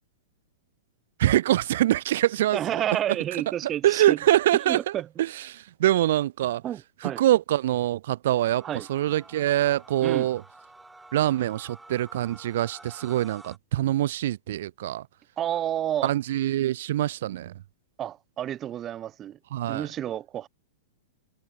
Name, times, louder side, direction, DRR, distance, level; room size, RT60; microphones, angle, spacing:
voice 1, 1.2-2.6 3.6-6.6 7.0-10.4 11.1-15.1 16.0-17.5 19.5-19.9, right 13 dB, 65° right, 0.6 m, -24 dB
voice 2, 2.5-4.2 4.7-5.1 6.6-7.2 8.6-8.9 10.0-10.3 15.4-16.1 18.0-19.4 19.7-20.5, right 11 dB, 25° right, 1.1 m, -30 dB
sound 1, 8.4-13.6, right 2 dB, 5° right, 2.3 m, -50 dB
hypercardioid pair, 135°, 0 cm